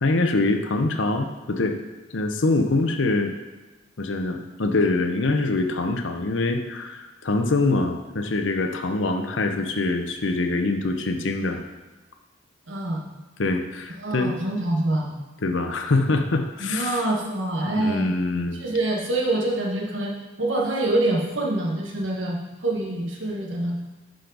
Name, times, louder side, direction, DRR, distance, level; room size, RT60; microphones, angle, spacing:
voice 1, 0.0-1.8 2.1-3.3 4.0-11.6 13.4-14.3 15.4-17.1 17.7-18.6, left 2 dB, 75° left, 5 dB, 0.8 m, -24 dB
voice 2, 12.7-13.0 14.0-15.1 16.6-18.1 18.5-22.4 22.6-23.8, right 1 dB, 80° right, -1 dB, 1.5 m, -25 dB
10.5 x 5.1 x 4.0 m, 1.2 s
head